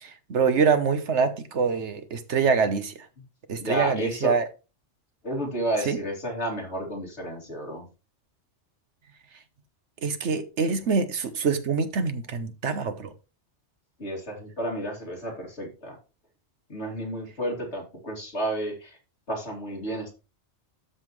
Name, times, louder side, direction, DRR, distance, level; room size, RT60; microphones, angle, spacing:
voice 1, 0.0-2.9 3.5-4.4 5.9-6.0 10.0-13.1, right 5 dB, 75° right, 1.3 m, -25 dB
voice 2, 3.6-4.4 5.2-7.8 14.0-16.0 16.7-19.0 19.3-20.1, right 1 dB, 70° left, 3.2 m, -31 dB
12.5 x 5.7 x 3.2 m
omnidirectional pair, 1.2 m